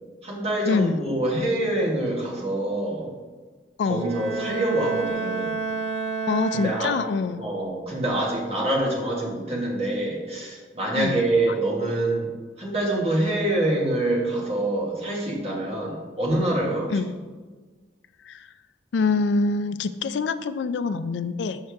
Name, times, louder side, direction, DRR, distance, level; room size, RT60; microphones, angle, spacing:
voice 1, 0.2-3.1 3.9-5.6 6.5-7.0 7.4-12.3 12.6-16.9, right 1 dB, 35° right, -3 dB, 1.5 m, -25 dB
Bowed string instrument, 4.0-7.4, right 4 dB, 90° right, 0.8 m, -30 dB
voice 2, 6.3-7.4 11.0-11.2 16.9-17.1 18.2-18.5 18.9-21.6, left 4 dB, 75° left, 12 dB, 0.3 m, -25 dB
6.4 x 5.5 x 3.5 m, 1.4 s
head